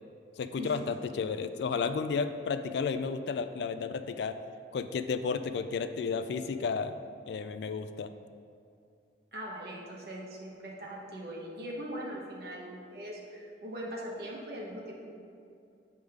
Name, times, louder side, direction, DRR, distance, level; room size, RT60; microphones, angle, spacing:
voice 1, 0.4-4.4 4.7-6.9 7.3-8.1, left 5 dB, 70° left, 10 dB, 0.3 m, -32 dB
voice 2, 9.3-14.9, right 1 dB, 55° right, -3 dB, 1.2 m, -41 dB
7.8 x 3.6 x 4.9 m, 2.5 s
head